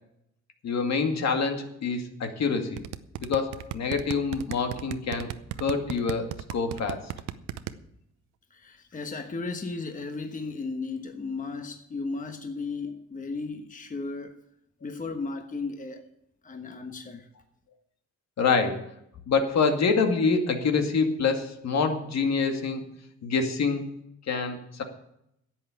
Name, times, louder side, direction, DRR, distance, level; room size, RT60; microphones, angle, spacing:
voice 1, 0.6-2.8 3.2-5.3 5.6-7.1 18.4-18.8 19.3-22.8 23.2-23.8 24.3-24.8, left 4 dB, 60° left, 2.2 m, -26 dB
sound 1, 2.8-7.7, right 13 dB, 90° right, 0.8 m, -34 dB
voice 2, 8.5-14.4 14.8-16.1 16.4-17.3, left 3 dB, 25° left, 1.3 m, -35 dB
11.0 x 8.2 x 9.0 m
cardioid pair, 90°, 30 cm